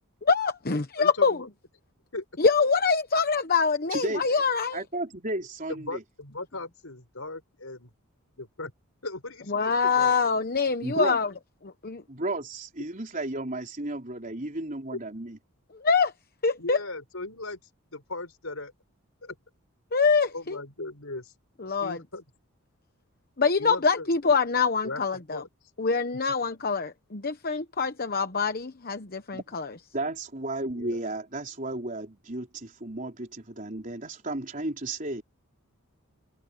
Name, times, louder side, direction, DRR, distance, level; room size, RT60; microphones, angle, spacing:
voice 1, 0.2-1.4 2.4-4.8 9.5-11.3 11.6-12.0 15.8-16.1 16.4-16.8 19.9-20.6 21.6-22.0 23.4-25.4 25.8-29.7, left 5 dB, 40° left, 1.0 m, -25 dB
voice 2, 1.0-1.5 2.1-2.2 5.7-7.9 8.4-8.7 9.0-10.1 16.6-17.6 17.9-18.7 19.2-19.4 20.3-21.3 21.8-22.2 23.6-24.1 24.8-25.5 30.7-31.0, left 2 dB, 65° left, 5.5 m, -38 dB
voice 3, 3.9-4.2 4.7-6.0 10.8-11.2 12.1-15.4 29.3-29.5 29.9-35.2, right 2 dB, 35° right, 4.4 m, -33 dB
head